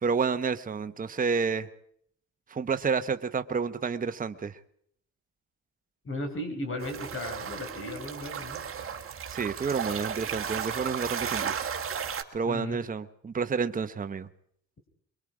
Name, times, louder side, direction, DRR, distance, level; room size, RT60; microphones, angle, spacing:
voice 1, 0.0-1.7 2.5-4.5 9.3-11.5 12.3-14.3, right 5 dB, 30° right, 9 dB, 1.0 m, -29 dB
voice 2, 6.0-8.9 12.4-12.8, left 1 dB, 45° left, 5 dB, 5.4 m, -36 dB
sound 1, 6.8-12.2, right 7 dB, 45° right, 1.9 m, -34 dB
23.5 x 22.5 x 4.9 m, 0.66 s
cardioid pair, 90°, 30 cm